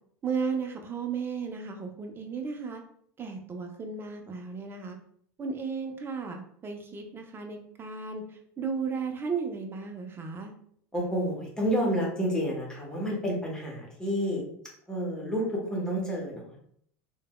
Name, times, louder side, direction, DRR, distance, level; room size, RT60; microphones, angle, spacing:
voice 1, 0.2-2.8 3.2-5.0 5.4-8.2 8.6-10.5, right 5 dB, 25° right, 3 dB, 0.5 m, -34 dB
voice 2, 10.9-14.4 14.9-16.6, equal, 10° left, -3 dB, 1.0 m, -29 dB
3.2 x 2.2 x 2.2 m, 0.65 s
hypercardioid pair, 100°, 9 cm